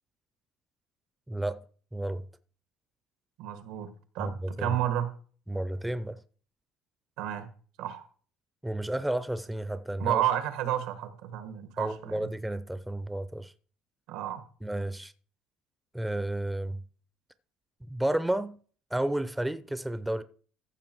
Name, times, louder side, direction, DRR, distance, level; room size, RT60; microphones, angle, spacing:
voice 1, 1.3-1.6 1.9-2.2 4.2-4.3 4.6-4.8 5.5-6.2 8.6-10.2 11.8-13.5 14.6-15.1 15.9-16.8 17.9-18.6 18.9-20.2, right 1 dB, 5° right, 0.6 m, -31 dB
voice 2, 3.4-5.1 7.2-7.5 7.8-8.1 10.0-12.3 14.1-14.4, right 11 dB, 85° right, 1.5 m, -31 dB
14.5 x 5.9 x 4.6 m
cardioid pair, 115°, 0 cm